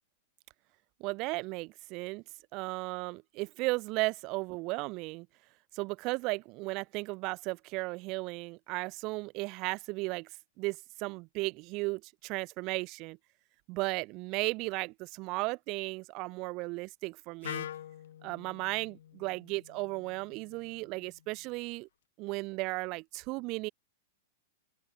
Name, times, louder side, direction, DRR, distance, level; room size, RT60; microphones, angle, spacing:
voice 1, 1.0-2.2 2.5-5.3 5.7-10.3 10.6-13.2 13.7-17.7 18.2-21.9 22.2-23.7, right 25 dB, 45° right, 1.2 m, -35 dB
Wind instrument woodwind instrument, 17.4-21.3, left 11 dB, 70° left, 3.8 m, -45 dB
open air
hypercardioid pair, 115°, 0 cm